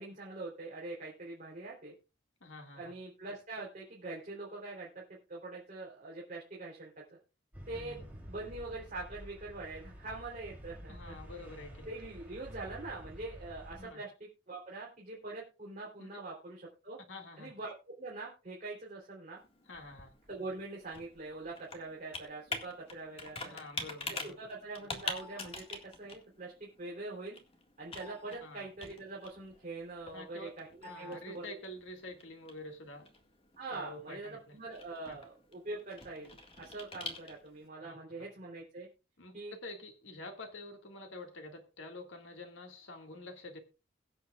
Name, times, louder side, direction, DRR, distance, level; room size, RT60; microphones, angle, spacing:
voice 1, 0.0-1.9 2.7-4.9 5.3-6.9 7.7-11.2 11.8-14.1 14.5-17.0 17.4-17.7 18.0-19.4 20.3-23.6 24.1-27.4 27.8-31.6 33.6-38.9 39.3-39.5, right 2 dB, 40° right, 3.4 m, -44 dB
voice 2, 2.4-2.9 7.7-8.2 10.9-11.9 13.8-14.0 16.0-16.1 17.1-17.5 19.7-20.1 23.5-24.4 28.4-28.7 30.1-30.5 30.9-33.1 33.7-34.6 35.1-35.2 37.8-38.0 39.2-43.6, left 2 dB, 75° left, 2.1 m, -48 dB
sound 1, 7.5-13.8, equal, 10° right, 3.1 m, -49 dB
Computer keyboard, 19.4-37.7, left 3 dB, 30° left, 1.8 m, -46 dB
22.0 x 7.7 x 2.4 m
head